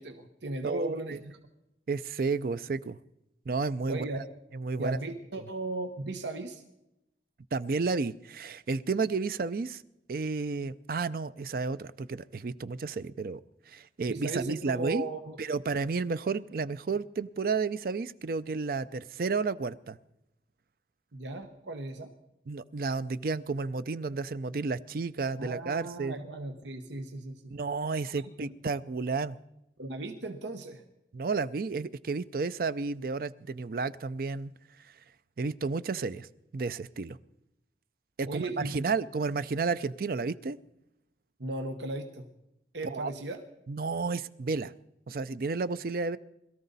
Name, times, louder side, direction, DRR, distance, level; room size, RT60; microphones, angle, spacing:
voice 1, 0.0-1.4 3.9-4.3 4.8-6.6 14.0-15.4 21.1-22.1 25.4-27.5 28.4-28.5 29.8-30.8 38.3-38.7 41.4-42.3 42.7-43.4, right 2 dB, 90° right, 7 dB, 1.1 m, -36 dB
voice 2, 0.6-1.2 1.9-3.0 3.5-4.1 4.5-5.0 7.5-9.8 10.1-13.4 13.7-15.1 15.4-20.0 22.5-26.2 27.5-29.4 31.1-34.5 35.4-36.3 36.5-37.2 38.2-40.6 42.9-43.1 43.7-44.7 45.1-46.2, right 4 dB, 55° right, 15 dB, 0.4 m, -32 dB
21.5 x 13.5 x 4.0 m, 0.86 s
head